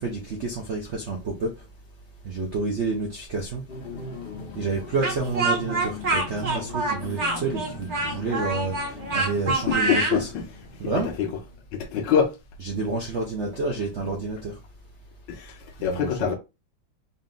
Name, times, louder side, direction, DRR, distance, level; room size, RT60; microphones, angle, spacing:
voice 1, 0.0-1.5 2.2-3.6 4.6-10.3 10.8-11.1 12.6-14.5 15.8-16.3, right 3 dB, 65° right, 0.7 m, -29 dB
sound 1, 3.7-11.7, left 3 dB, 55° left, 0.6 m, -40 dB
Speech, 5.0-10.2, right 2 dB, 45° right, 1.0 m, -26 dB
voice 2, 9.7-10.5 10.8-11.3 11.7-12.4 15.3-16.3, left 7 dB, 70° left, 1.3 m, -25 dB
4.1 x 2.2 x 3.7 m
omnidirectional pair, 2.1 m